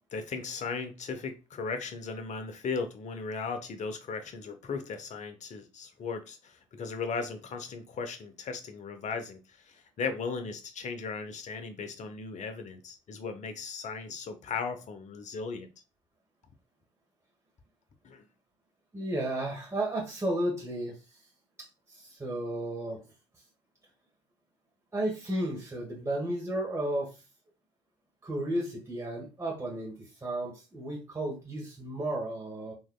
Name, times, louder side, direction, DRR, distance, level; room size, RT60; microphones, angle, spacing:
voice 1, 0.1-15.7 18.0-18.3, left 5 dB, 50° left, 8 dB, 0.9 m, -37 dB
voice 2, 18.9-21.0 21.9-23.0 24.9-27.2 28.2-32.7, right 1 dB, 15° right, -2 dB, 1.4 m, -33 dB
3.8 x 3.1 x 2.3 m, 0.28 s
hypercardioid pair, 55°, 16 cm